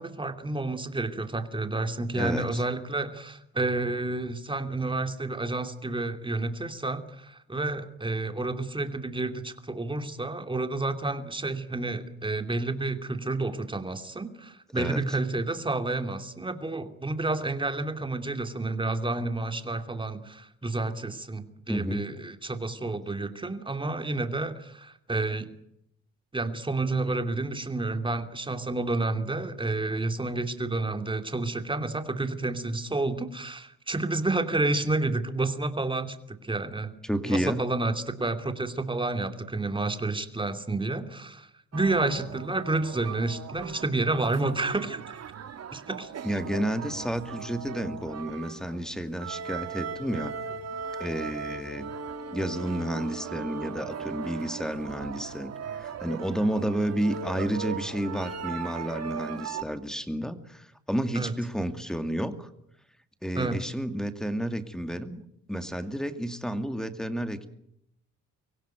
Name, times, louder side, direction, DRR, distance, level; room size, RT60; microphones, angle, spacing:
voice 1, 0.0-25.5 26.3-37.0 37.2-45.0 45.7-46.1 61.1-61.4 63.3-63.7, right 2 dB, 15° right, 7 dB, 2.8 m, -30 dB
voice 2, 2.1-2.6 14.7-15.0 21.7-22.1 37.0-37.6 46.2-50.4 51.0-51.9 52.3-62.5 63.2-65.2 65.5-67.5, equal, ahead, 9 dB, 2.4 m, -31 dB
sound 1, 41.7-59.6, right 6 dB, 55° right, 2.1 m, -38 dB
24.5 x 16.5 x 9.2 m, 0.76 s
cardioid pair, 90°, 30 cm